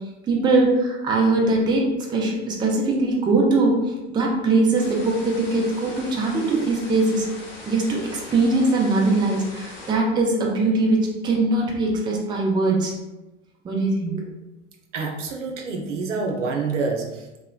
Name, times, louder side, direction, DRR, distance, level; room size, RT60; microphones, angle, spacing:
voice 1, 0.3-1.8 2.1-3.8 4.1-7.2 7.7-12.9 13.6-14.2, right 2 dB, 15° right, -1 dB, 0.4 m, -21 dB
sound 1, 4.7-9.9, left 2 dB, 35° left, 0.8 m, -40 dB
voice 2, 14.9-17.4, right 4 dB, 80° right, 3 dB, 0.6 m, -27 dB
2.9 x 2.1 x 2.3 m, 1.0 s
hypercardioid pair, 90°, 36 cm